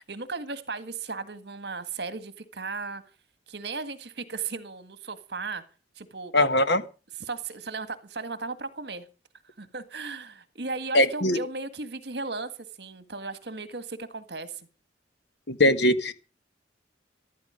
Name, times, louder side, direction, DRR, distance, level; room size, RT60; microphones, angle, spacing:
voice 1, 0.0-3.0 3.5-5.6 6.0-6.3 7.2-9.1 9.6-12.5 12.8-14.7, right 4 dB, 65° right, 12 dB, 1.7 m, -36 dB
voice 2, 6.3-6.8 10.9-11.4 15.5-16.1, left 1 dB, 70° left, 11 dB, 1.4 m, -21 dB
14.0 x 12.5 x 5.1 m, 0.33 s
head